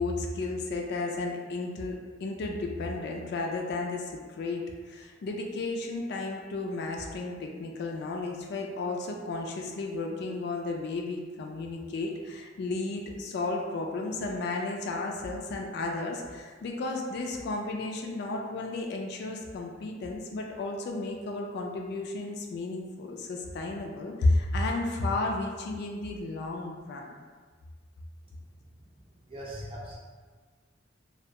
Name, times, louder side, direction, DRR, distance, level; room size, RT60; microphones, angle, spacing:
voice 1, 0.0-27.1, left 2 dB, 60° left, 1 dB, 0.3 m, -33 dB
voice 2, 29.3-30.0, equal, 30° right, -6 dB, 0.6 m, -39 dB
2.3 x 2.1 x 2.8 m, 1.5 s
head